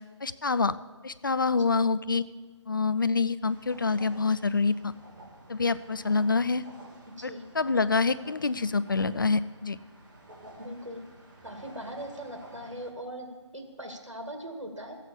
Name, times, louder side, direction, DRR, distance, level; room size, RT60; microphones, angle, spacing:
voice 1, 0.2-0.8 1.0-2.2 2.7-4.9 5.5-6.6 7.2-9.8, left 4 dB, 40° left, 15 dB, 0.4 m, -26 dB
sound 1, 3.4-12.9, right 1 dB, 40° right, 2.2 m, -51 dB
voice 2, 10.6-11.0 11.4-13.3 13.5-15.0, equal, 85° right, 3 dB, 2.0 m, -40 dB
14.0 x 8.2 x 7.3 m, 1.3 s
figure-of-eight pair, 155°, 16 cm